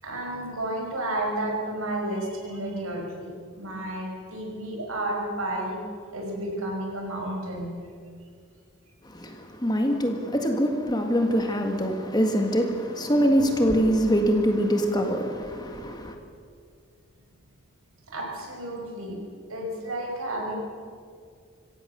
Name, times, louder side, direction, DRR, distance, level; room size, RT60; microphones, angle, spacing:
voice 1, 0.0-5.8 6.1-7.7 18.1-19.2 19.5-20.6, right 1 dB, 85° right, 5.4 m, -31 dB
voice 2, 9.0-16.2, equal, 20° left, 1.8 m, -24 dB
24.5 x 16.5 x 6.8 m
head